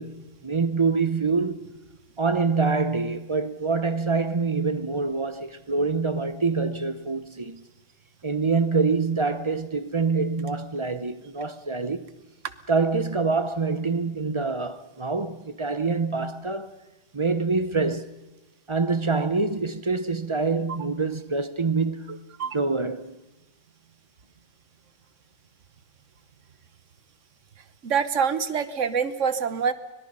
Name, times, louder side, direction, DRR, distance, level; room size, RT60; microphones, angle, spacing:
voice 1, 0.0-1.7 2.2-7.6 8.2-12.0 12.7-16.8 17.1-18.1 18.7-22.1 22.5-23.2, right 4 dB, 30° right, 0.7 m, -25 dB
voice 2, 27.8-29.7, right 6 dB, 85° right, 1.4 m, -25 dB
24.5 x 22.5 x 5.5 m
omnidirectional pair, 1.3 m